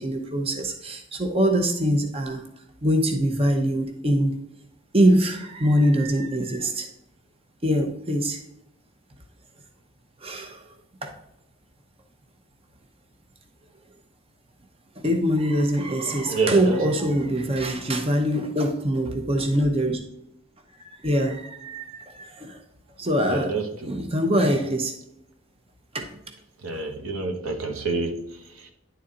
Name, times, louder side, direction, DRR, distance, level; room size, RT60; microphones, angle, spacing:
voice 1, 0.0-2.4 2.8-4.3 4.9-6.9 7.6-8.4 10.2-10.7 11.0-11.1 15.0-20.0 20.8-22.6 23.0-24.9 25.9-26.1, equal, 25° right, 4 dB, 0.7 m, -23 dB
voice 2, 16.3-17.2 23.3-24.1 26.6-28.7, right 3 dB, 85° right, 4 dB, 1.2 m, -29 dB
10.5 x 4.2 x 3.8 m, 0.80 s
head